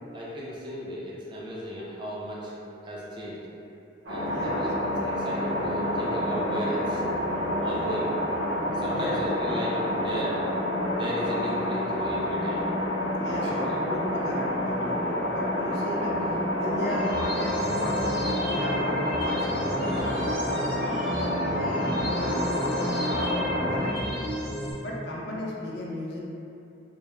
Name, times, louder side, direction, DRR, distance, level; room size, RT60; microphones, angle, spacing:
voice 1, 0.1-2.5 2.8-3.4 4.1-7.0 7.6-8.1 8.7-10.4 10.9-12.6 13.4-13.8, equal, 25° right, -6 dB, 0.3 m, -35 dB
sound 1, 4.0-23.8, left 1 dB, 65° right, 0.9 m, -28 dB
voice 2, 4.2-4.6 8.9-9.2 13.1-20.3 20.8-22.5 22.8-24.3 24.8-26.2, equal, 60° left, -4 dB, 0.4 m, -35 dB
sound 2, 16.7-24.7, equal, 5° left, 0.7 m, -33 dB
2.3 x 2.1 x 2.9 m, 2.8 s
head